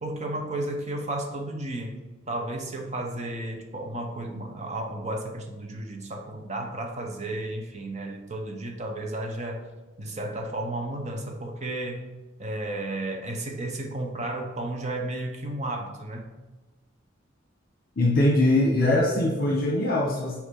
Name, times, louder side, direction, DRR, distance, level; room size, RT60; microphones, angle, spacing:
voice 1, 0.0-2.0 2.3-9.7 10.0-12.0 12.4-16.3, right 1 dB, 35° right, 3 dB, 0.9 m, -33 dB
voice 2, 18.0-20.4, left 1 dB, 45° left, -1 dB, 1.0 m, -22 dB
7.0 x 4.8 x 3.7 m, 1.2 s
head